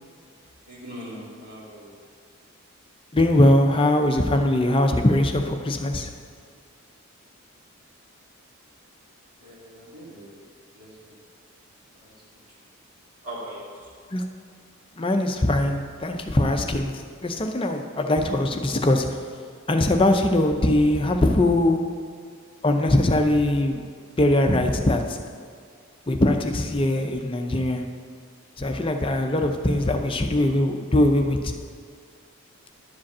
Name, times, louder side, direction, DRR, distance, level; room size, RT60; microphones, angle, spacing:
voice 1, 0.7-1.9 9.4-10.5 10.7-11.2 12.0-12.1 13.2-13.9 29.7-29.9, equal, 85° right, 2.3 m, -41 dB
voice 2, 3.1-6.2 14.1-14.3 15.0-19.4 19.7-22.1 22.6-23.9 24.2-25.3 26.1-27.9 28.6-31.5, left 1 dB, 25° left, 0.5 m, -21 dB
11.5 x 5.2 x 7.2 m
head